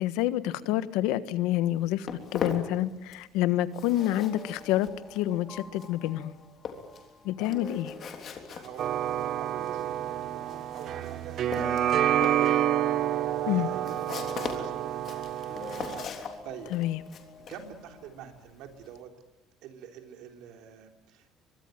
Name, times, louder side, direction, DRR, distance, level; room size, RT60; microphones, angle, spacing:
voice 1, 0.0-6.3 7.2-7.9 13.5-13.7 16.7-17.0, left 13 dB, 80° left, 13 dB, 1.4 m, -28 dB
Walk footsteps, 1.6-3.4 3.6-19.0, left 6 dB, 35° left, 3.3 m, -41 dB
sound 1, 4.0-11.2 11.5-18.2, left 3 dB, 20° left, 2.5 m, -49 dB
voice 2, 8.5-12.2 13.5-14.2 14.4-15.4 16.4-16.7 17.4-19.1 19.6-21.5, right 8 dB, 60° right, 5 dB, 3.6 m, -46 dB
sound 2, 8.8-16.0, right 11 dB, 40° right, 0.9 m, -28 dB
24.0 x 23.5 x 9.2 m, 1.0 s
cardioid pair, 180°, 0 cm